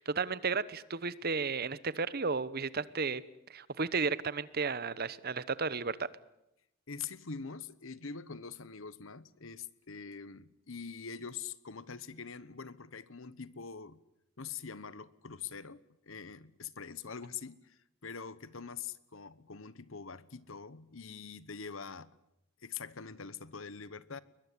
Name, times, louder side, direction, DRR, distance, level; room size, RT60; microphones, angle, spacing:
voice 1, 0.0-3.2 3.5-6.1, right 4 dB, 45° right, 1.0 m, -33 dB
voice 2, 6.9-14.0 14.4-22.2 22.6-24.2, left 6 dB, 65° left, 1.1 m, -44 dB
22.0 x 21.5 x 9.8 m
head